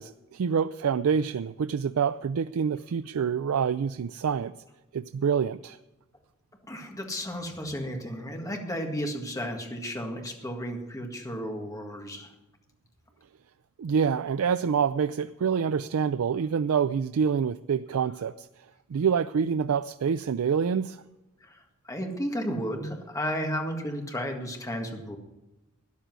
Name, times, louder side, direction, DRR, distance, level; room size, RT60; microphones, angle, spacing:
voice 1, 0.0-4.5 4.9-5.8 13.8-18.5 18.9-21.0, right 6 dB, 85° right, 13 dB, 0.4 m, -26 dB
voice 2, 6.7-12.3 21.4-25.2, equal, 15° left, 3 dB, 1.8 m, -33 dB
13.0 x 10.0 x 6.1 m, 0.98 s
head